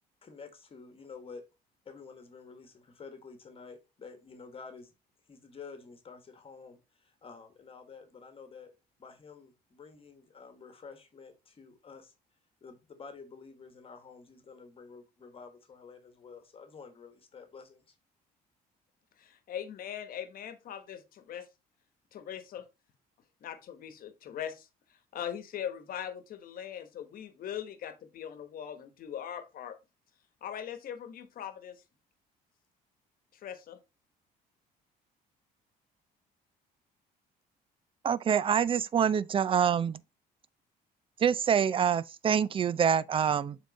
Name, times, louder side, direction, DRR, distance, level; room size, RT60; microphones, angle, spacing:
voice 1, 0.2-1.5 1.8-4.9 5.3-12.1 12.6-17.9, left 5 dB, 35° left, 1.4 m, -50 dB
voice 2, 19.2-21.5 22.1-22.6 23.4-24.7 25.1-29.8 30.4-31.8 33.3-33.8, left 9 dB, 60° left, 1.2 m, -40 dB
voice 3, 38.0-40.0 41.2-43.6, right 8 dB, 30° right, 0.4 m, -26 dB
7.2 x 3.8 x 4.0 m
cardioid pair, 110°, 17 cm